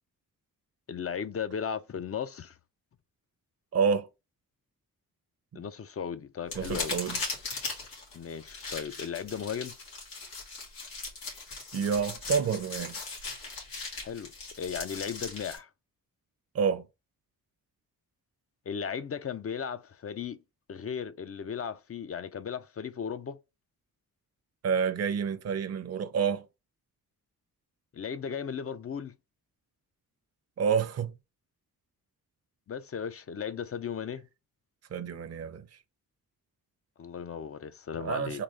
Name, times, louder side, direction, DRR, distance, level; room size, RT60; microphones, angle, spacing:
voice 1, 0.9-2.6 5.5-7.0 8.1-9.7 14.0-14.3 14.6-15.7 18.7-20.4 20.7-23.4 27.9-29.1 32.7-34.3 37.0-38.4, left 7 dB, 40° left, 0.5 m, -36 dB
voice 2, 3.7-4.1 5.5-5.6 6.6-7.2 11.7-13.0 16.5-16.8 24.6-26.4 30.6-31.1 34.9-35.7 38.0-38.4, right 6 dB, 45° right, 0.6 m, -28 dB
sound 1, 6.5-15.6, left 3 dB, 90° left, 2.0 m, -39 dB
4.0 x 3.1 x 3.3 m
cardioid pair, 80°, 35 cm